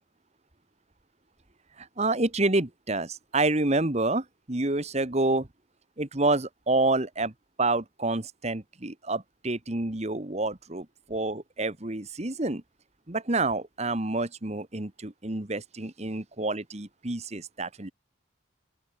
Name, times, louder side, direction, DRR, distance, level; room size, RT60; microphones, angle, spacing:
voice 1, 1.8-5.5 6.0-7.3 7.6-12.6 13.1-17.9, right 2 dB, 35° right, 1.4 m, -28 dB
open air
head